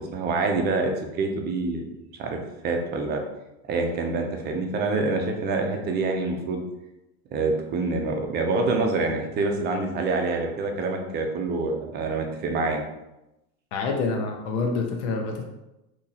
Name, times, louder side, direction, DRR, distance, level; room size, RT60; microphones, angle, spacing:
voice 1, 0.0-1.8 2.2-3.2 3.7-6.6 7.3-12.8, right 3 dB, 30° right, 3 dB, 0.6 m, -26 dB
voice 2, 13.7-15.4, left 4 dB, 85° left, 2 dB, 0.8 m, -27 dB
2.9 x 2.8 x 3.9 m, 0.93 s
supercardioid pair, 145°, 34 cm